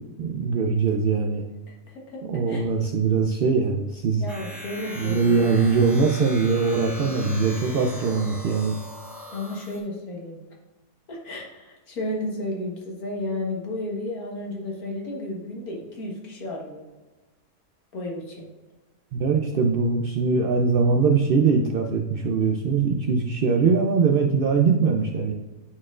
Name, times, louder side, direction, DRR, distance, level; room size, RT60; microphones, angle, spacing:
voice 1, 0.0-1.4 2.3-4.2 5.0-8.8 19.1-25.3, right 5 dB, 70° right, 1 dB, 0.5 m, -22 dB
voice 2, 1.7-2.2 2.5-2.6 4.2-5.4 7.0-7.3 9.3-10.4 11.1-16.8 17.9-18.5, left 1 dB, 85° left, -1 dB, 1.8 m, -33 dB
sound 1, 4.3-9.8, left 1 dB, ahead, 1.1 m, -39 dB
9.5 x 4.3 x 2.4 m, 1.2 s
omnidirectional pair, 1.5 m